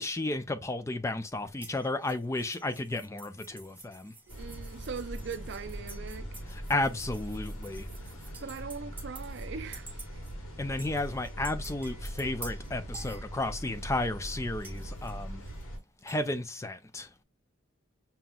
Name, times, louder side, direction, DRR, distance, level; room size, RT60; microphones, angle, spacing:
voice 1, 0.0-4.1 6.5-7.9 10.6-15.4 16.0-17.1, left 2 dB, 15° left, 0.3 m, -33 dB
sound 1, 1.6-9.5 9.7-10.3 10.8-13.8 14.6-16.2, right 3 dB, 10° right, 0.7 m, -50 dB
sound 2, 4.3-15.8, right 1 dB, 85° left, 1.5 m, -41 dB
voice 2, 4.4-6.4 8.4-10.0, right 5 dB, 55° right, 0.4 m, -40 dB
5.5 x 2.9 x 2.3 m
head